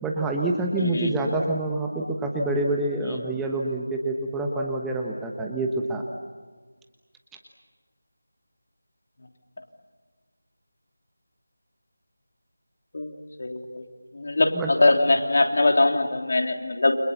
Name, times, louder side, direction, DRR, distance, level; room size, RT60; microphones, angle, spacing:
voice 1, 0.0-6.0 14.4-14.7, right 2 dB, 5° right, 0 dB, 1.2 m, -27 dB
voice 2, 0.8-1.1 3.1-3.2 12.9-13.8 14.1-16.9, left 2 dB, 50° left, 3 dB, 3.3 m, -22 dB
29.5 x 26.5 x 7.2 m, 1.4 s
figure-of-eight pair, 170°, 0 cm